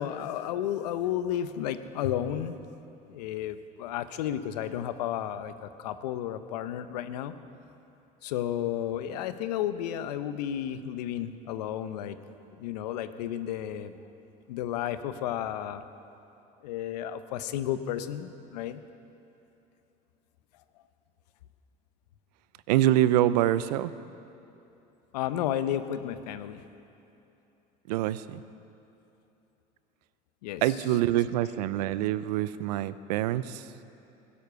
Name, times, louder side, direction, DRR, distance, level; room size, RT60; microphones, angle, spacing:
voice 1, 0.0-2.6 3.1-7.4 8.2-12.2 12.6-14.0 14.5-15.8 16.6-18.8 25.1-26.6 30.4-30.8 31.1-31.3, left 10 dB, 85° left, 12 dB, 0.7 m, -32 dB
voice 2, 22.7-23.9 27.9-28.4 30.6-33.6, right 13 dB, 85° right, 16 dB, 0.5 m, -25 dB
15.5 x 11.0 x 6.8 m, 2.9 s
hypercardioid pair, 80°, 20 cm